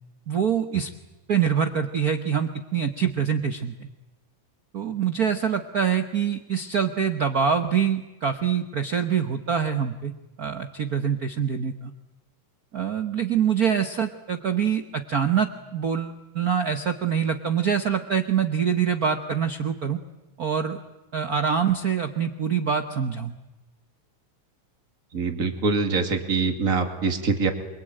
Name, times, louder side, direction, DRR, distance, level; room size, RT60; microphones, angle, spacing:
voice 1, 0.3-0.9 1.3-3.9 4.7-10.1 10.4-11.9 12.7-20.0 20.4-20.8 21.1-23.4, right 7 dB, 80° right, 8 dB, 0.8 m, -25 dB
voice 2, 25.1-27.5, right 4 dB, 30° right, 5 dB, 2.6 m, -24 dB
28.0 x 23.5 x 9.0 m, 1.0 s
omnidirectional pair, 3.4 m